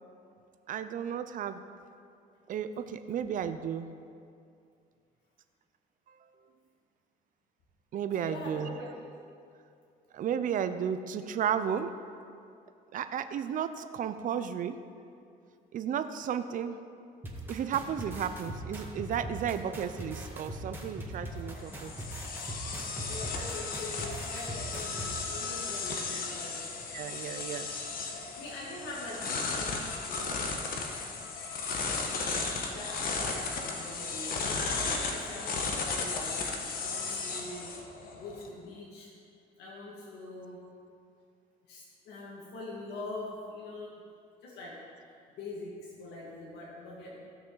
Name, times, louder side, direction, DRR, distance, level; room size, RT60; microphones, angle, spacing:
voice 1, 0.7-1.6 2.5-3.9 7.9-8.7 10.1-11.9 12.9-14.7 15.7-16.8 17.5-21.9 26.9-27.7, right 8 dB, 50° right, 10 dB, 0.6 m, -33 dB
voice 2, 8.1-9.1 23.0-26.6 28.4-30.5 32.0-34.6 35.1-37.7 38.1-39.1 39.6-40.6 41.7-44.0 44.4-47.2, left 2 dB, 80° left, -5 dB, 1.9 m, -43 dB
sound 1, 17.2-25.1, equal, 10° right, 1.7 m, -40 dB
sound 2, 21.3-38.5, left 4 dB, 60° left, 1.3 m, -35 dB
16.0 x 6.2 x 4.0 m, 2.4 s
cardioid pair, 110°, 17 cm